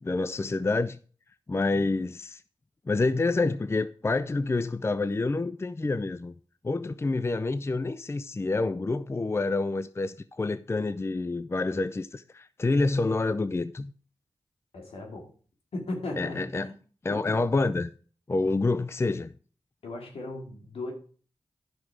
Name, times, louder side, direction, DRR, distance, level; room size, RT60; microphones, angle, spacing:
voice 1, 0.0-1.0 1.5-2.4 2.9-6.3 6.6-13.9 16.2-16.7 17.0-17.9 18.3-19.3, left 3 dB, 25° left, 0.4 m, -28 dB
voice 2, 14.7-15.3 15.7-16.7 17.1-17.4 19.8-20.9, left 2 dB, 75° left, 2.6 m, -37 dB
10.5 x 6.1 x 4.8 m
cardioid pair, 40°, 10 cm